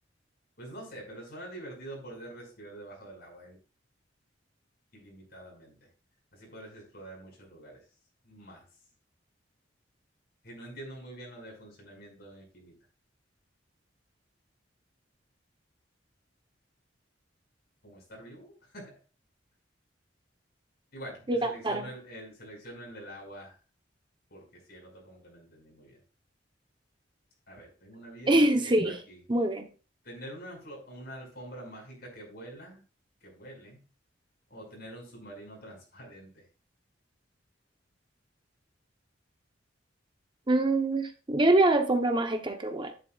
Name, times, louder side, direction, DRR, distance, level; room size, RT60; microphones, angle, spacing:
voice 1, 0.6-3.6 4.9-5.9 6.3-7.8 8.2-8.6 10.4-12.7 17.8-18.9 20.9-23.6 24.3-26.0 27.5-29.2 30.0-32.8 33.2-33.8 34.5-36.5, right 1 dB, 55° left, 5.5 m, -46 dB
voice 2, 28.3-29.0 29.3-29.7 40.5-42.9, right 2 dB, 25° right, 0.8 m, -24 dB
11.0 x 10.5 x 2.4 m
head